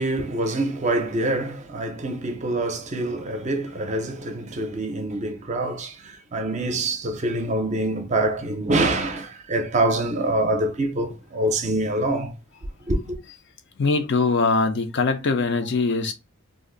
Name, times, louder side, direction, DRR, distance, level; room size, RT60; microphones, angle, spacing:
voice 1, 0.0-12.3 12.9-13.2, right 2 dB, 35° right, 0.5 m, -25 dB
voice 2, 13.8-16.1, left 4 dB, 55° left, 0.4 m, -22 dB
2.5 x 2.0 x 3.7 m
head